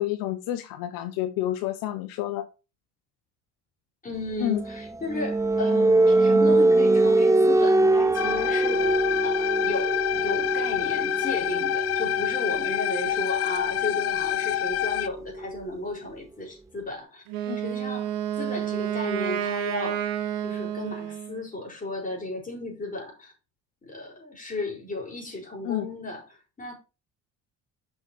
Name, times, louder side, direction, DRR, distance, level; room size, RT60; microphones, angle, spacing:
voice 1, 0.0-2.5 4.4-4.6 17.5-17.6 25.6-25.9, left 14 dB, 75° left, 0.8 m, -29 dB
voice 2, 4.0-17.2 17.6-20.0 20.4-23.3 23.8-26.7, left 2 dB, 25° left, 4.7 m, -35 dB
sound 1, 4.3-15.9, right 2 dB, 10° right, 0.4 m, -24 dB
sound 2, 8.1-15.1, left 12 dB, 45° left, 0.5 m, -27 dB
Wind instrument woodwind instrument, 17.3-21.4, right 10 dB, 75° right, 1.7 m, -30 dB
6.5 x 5.8 x 4.7 m
supercardioid pair, 80°, 34 cm